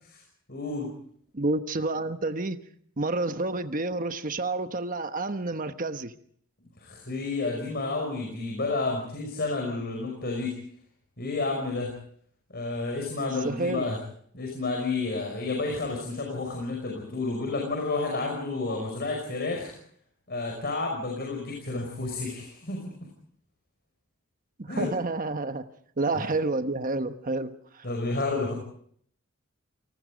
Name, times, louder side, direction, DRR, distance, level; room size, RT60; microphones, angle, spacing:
voice 1, 0.5-0.9 6.8-10.5 11.2-11.9 12.5-14.0 14.3-19.7 20.3-22.9 24.7-24.9 26.1-26.2 27.8-28.5, left 3 dB, 50° left, 1 dB, 5.8 m, -30 dB
voice 2, 1.3-2.6 3.0-6.1 13.2-13.9 24.7-25.6 26.0-27.9, right 2 dB, 40° right, 9 dB, 1.2 m, -29 dB
29.0 x 19.5 x 5.2 m, 0.63 s
head